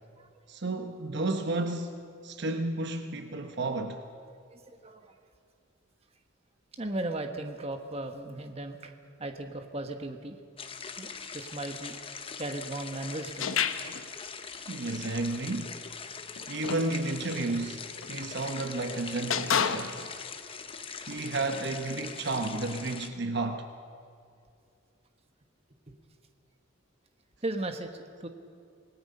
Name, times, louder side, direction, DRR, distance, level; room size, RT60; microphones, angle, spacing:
voice 1, 0.5-4.0 14.7-15.8 16.5-20.0 21.1-23.7, right 2 dB, 55° right, 1.0 m, -32 dB
voice 2, 4.5-5.1 6.8-8.9 9.2-10.4 11.0-12.0 12.4-13.5 25.9-26.0 27.4-28.3, right 2 dB, 30° right, 1.3 m, -36 dB
sound 1, 10.6-23.1, left 5 dB, 30° left, 0.9 m, -42 dB
sound 2, 13.4-14.1 16.3-16.9 18.0-18.2 19.3-20.1, left 7 dB, 85° left, 0.9 m, -29 dB
26.5 x 18.5 x 5.5 m
head